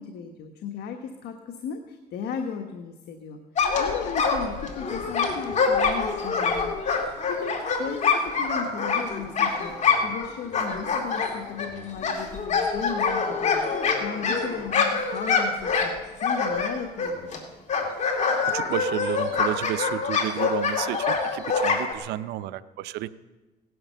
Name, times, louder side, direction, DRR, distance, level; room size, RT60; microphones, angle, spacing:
voice 1, 0.0-6.8 7.1-15.9 16.2-17.3, left 7 dB, 70° left, 5 dB, 1.4 m, -36 dB
sound 1, 3.6-10.3 10.5-17.4 17.7-21.9, left 5 dB, 45° left, 2.5 m, -25 dB
voice 2, 18.5-23.1, right 13 dB, 85° right, 14 dB, 0.7 m, -32 dB
17.5 x 11.0 x 6.8 m, 1.2 s
cardioid pair, 110°, 17 cm